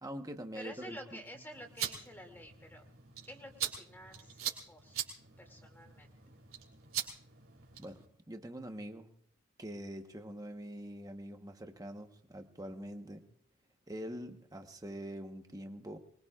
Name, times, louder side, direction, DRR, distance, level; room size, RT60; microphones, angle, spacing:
voice 1, 0.0-1.0 7.8-9.1 9.6-13.2 13.9-16.0, equal, 15° right, 6 dB, 1.1 m, -44 dB
voice 2, 0.5-2.8 3.2-5.0 5.4-6.1, equal, 10° left, 3 dB, 2.4 m, -50 dB
sound 1, 1.5-8.1, right 10 dB, 70° right, 3.3 m, -42 dB
24.5 x 22.0 x 2.4 m, 0.63 s
head